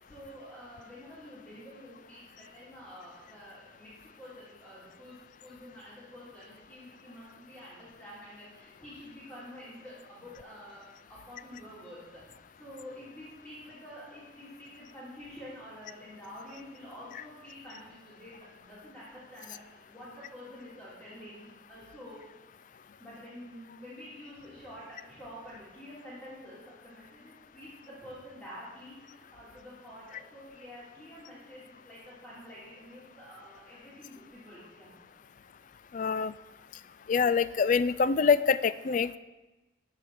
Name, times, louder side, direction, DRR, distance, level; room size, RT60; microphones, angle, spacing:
voice 1, 0.0-10.8 11.1-22.2 23.0-34.9, equal, 5° left, -11 dB, 3.0 m, -48 dB
voice 2, 35.9-36.3 37.1-39.2, left 5 dB, 40° left, 15 dB, 0.3 m, -25 dB
13.5 x 4.9 x 6.0 m, 1.1 s
head